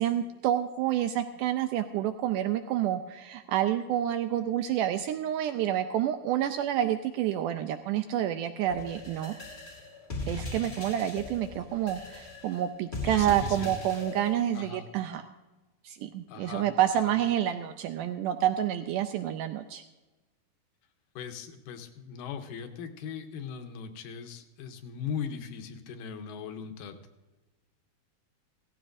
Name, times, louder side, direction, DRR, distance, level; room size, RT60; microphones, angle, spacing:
voice 1, 0.0-9.3 10.3-15.2 15.8-19.8, right 11 dB, 90° right, 8 dB, 1.8 m, -28 dB
sound 1, 8.7-14.3, left 2 dB, 35° left, 0.7 m, -39 dB
voice 2, 13.1-13.7 14.6-14.9 16.3-16.7 17.1-17.2 21.2-27.0, left 7 dB, 75° left, 7 dB, 2.4 m, -39 dB
17.0 x 15.0 x 2.6 m, 1.1 s
omnidirectional pair, 4.2 m